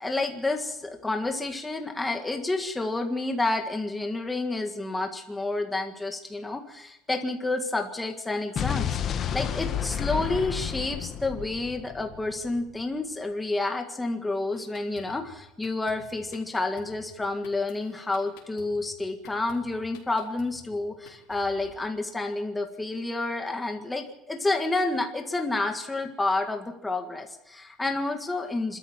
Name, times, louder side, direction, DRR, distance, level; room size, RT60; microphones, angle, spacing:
voice 1, 0.0-9.0 9.3-28.8, left 2 dB, 5° left, 4 dB, 1.7 m, -29 dB
Explosion, 8.6-12.6, left 9 dB, 30° left, 1.1 m, -31 dB
Drum kit, 14.5-21.8, left 8 dB, 70° left, 4.1 m, -53 dB
27.0 x 13.0 x 7.4 m, 0.88 s
cardioid pair, 175°, 0 cm